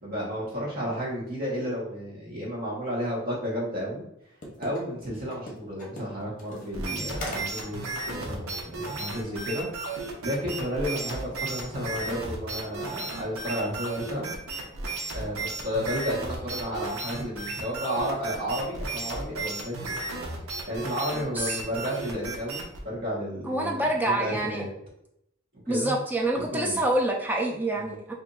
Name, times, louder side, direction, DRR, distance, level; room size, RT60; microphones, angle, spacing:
voice 1, 0.0-4.0 4.6-9.7 10.2-14.3 15.1-19.9 20.7-24.7 25.6-26.0 26.3-26.8 27.7-28.0, equal, 40° right, -5 dB, 1.2 m, -32 dB
sound 1, 4.4-4.8 5.3-7.7 8.1-8.2 9.9-10.1 10.4-10.6, left 1 dB, 35° left, 0.8 m, -39 dB
sound 2, 6.7-22.8, right 3 dB, 75° right, 0.7 m, -34 dB
voice 2, 23.5-24.7 25.7-28.1, right 1 dB, 10° right, 0 dB, 0.4 m, -27 dB
2.6 x 2.6 x 3.8 m, 0.78 s
head